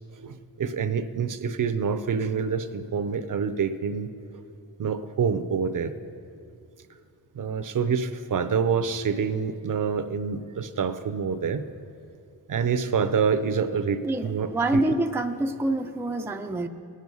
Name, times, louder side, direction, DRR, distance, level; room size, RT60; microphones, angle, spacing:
voice 1, 0.2-4.4 4.8-6.0 7.3-11.7 12.5-14.8, right 6 dB, 55° right, 11 dB, 0.6 m, -27 dB
voice 2, 14.0-16.7, right 2 dB, 5° right, 5 dB, 0.4 m, -26 dB
18.5 x 6.3 x 5.5 m, 2.5 s
wide cardioid pair, 95°, 39 cm